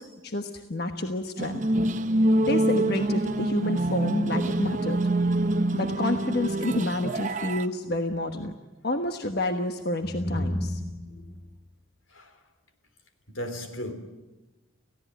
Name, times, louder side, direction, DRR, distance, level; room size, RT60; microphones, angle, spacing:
voice 1, 0.0-1.6 2.4-5.0 5.7-8.5 8.8-10.7, left 1 dB, 50° left, 1.2 m, -29 dB
sound 1, 1.4-7.7, right 1 dB, 40° right, 0.9 m, -25 dB
voice 2, 10.1-11.3 12.1-12.3 13.3-13.9, left 1 dB, 80° left, 3.3 m, -32 dB
29.5 x 16.5 x 9.3 m
head